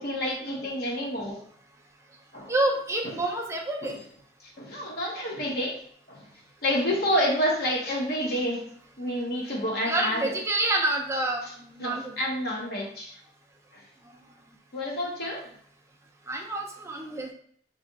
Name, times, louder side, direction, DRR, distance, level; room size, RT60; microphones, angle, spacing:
voice 1, 0.0-1.4 2.3-2.5 3.8-4.0 4.6-5.8 6.1-6.2 6.6-8.6 9.0-10.3 11.8-13.2 14.7-15.4, equal, 60° left, -2 dB, 1.0 m, -28 dB
voice 2, 2.5-4.0 9.9-12.1 16.3-17.3, right 2 dB, 15° right, 1 dB, 0.4 m, -28 dB
3.3 x 2.4 x 3.8 m, 0.62 s
head